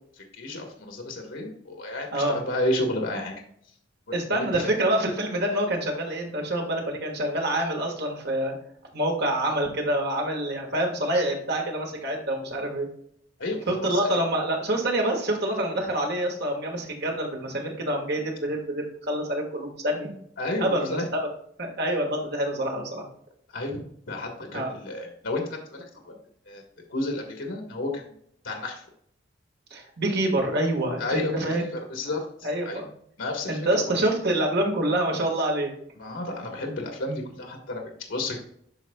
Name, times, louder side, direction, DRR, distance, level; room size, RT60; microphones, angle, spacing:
voice 1, 0.2-3.3 4.1-4.2 4.5-4.7 13.4-14.2 20.4-21.0 23.5-23.8 24.1-26.2 26.5-26.6 26.9-28.1 28.4-28.8 31.0-32.8 33.2-33.8 36.0-38.4, left 2 dB, 85° left, 2 dB, 1.4 m, -31 dB
voice 2, 4.1-8.5 8.9-12.9 13.7-20.1 20.6-21.3 21.6-23.0 24.5-24.7 29.7-31.6 32.4-32.9 33.5-35.7, right 1 dB, 60° right, 1 dB, 1.7 m, -26 dB
12.0 x 4.2 x 2.3 m, 0.66 s
head